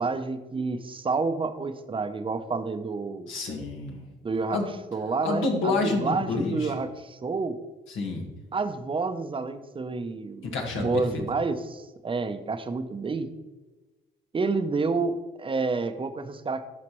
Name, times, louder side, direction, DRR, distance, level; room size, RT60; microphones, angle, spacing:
voice 1, 0.0-3.3 4.2-4.6 4.9-7.6 8.5-10.5 10.8-13.3 14.3-16.6, right 4 dB, 25° right, 9 dB, 0.6 m, -29 dB
voice 2, 3.3-4.0 4.5-4.7 5.2-6.7 7.9-8.2 10.4-11.2, left 3 dB, 85° left, 1 dB, 1.6 m, -28 dB
12.0 x 4.2 x 3.0 m, 1.2 s
cardioid pair, 90°, 20 cm